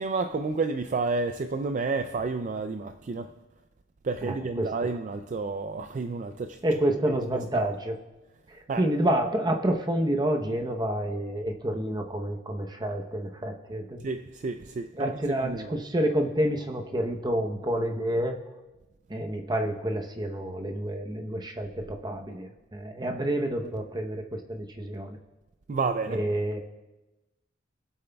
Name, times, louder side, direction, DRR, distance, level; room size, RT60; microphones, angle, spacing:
voice 1, 0.0-3.3 4.0-6.6 7.5-7.7 8.7-8.8 14.0-15.1 15.4-15.8 25.7-26.2, right 4 dB, 40° right, 8 dB, 0.3 m, -30 dB
voice 2, 4.2-4.9 6.6-7.9 8.5-14.1 14.9-18.3 19.1-25.2 26.1-26.6, right 1 dB, 20° right, 3 dB, 0.8 m, -29 dB
22.5 x 7.8 x 2.3 m, 1.1 s
head